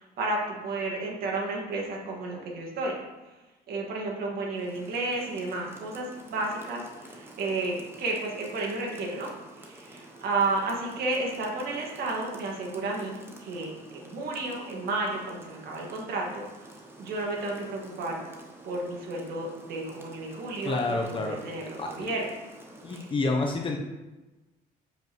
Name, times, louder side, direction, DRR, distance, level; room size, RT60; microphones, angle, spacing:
voice 1, 0.0-3.0 3.7-18.2 18.6-20.8 21.1-22.2 22.9-23.1, right 2 dB, 65° right, -1 dB, 1.8 m, -32 dB
Rain, 4.5-23.2, right 1 dB, 15° right, 1.0 m, -49 dB
voice 2, 20.6-21.4 21.8-21.9 22.8-23.8, left 3 dB, 30° left, 2 dB, 0.7 m, -28 dB
7.7 x 5.2 x 3.0 m, 1.1 s
cardioid pair, 110°, 17 cm